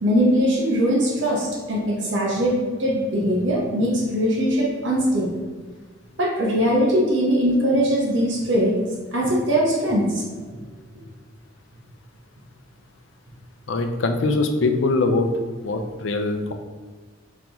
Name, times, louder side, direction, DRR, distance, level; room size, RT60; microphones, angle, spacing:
voice 1, 0.0-5.4 6.2-8.8 9.1-10.2 10.5-10.6, equal, 70° right, -2 dB, 1.0 m, -21 dB
voice 2, 13.7-15.3 15.6-16.5, left 3 dB, 75° left, 6 dB, 0.5 m, -22 dB
4.6 x 3.8 x 3.0 m, 1.4 s
head